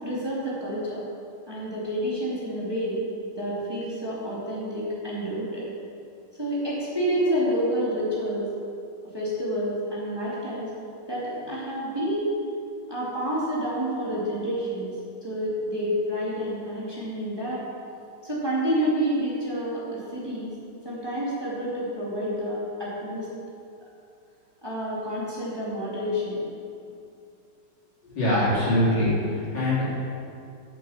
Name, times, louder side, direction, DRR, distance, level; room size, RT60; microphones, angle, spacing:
voice 1, 0.0-1.1 1.5-3.0 3.3-5.7 6.4-8.5 9.1-10.7 11.1-12.3 12.9-14.9 15.2-17.6 18.2-20.5 20.8-23.3 24.6-26.5, equal, 15° right, -7 dB, 2.6 m, -29 dB
voice 2, 28.1-29.9, left 1 dB, 75° left, -8 dB, 4.1 m, -23 dB
9.6 x 8.0 x 7.2 m, 2.5 s
omnidirectional pair, 1.9 m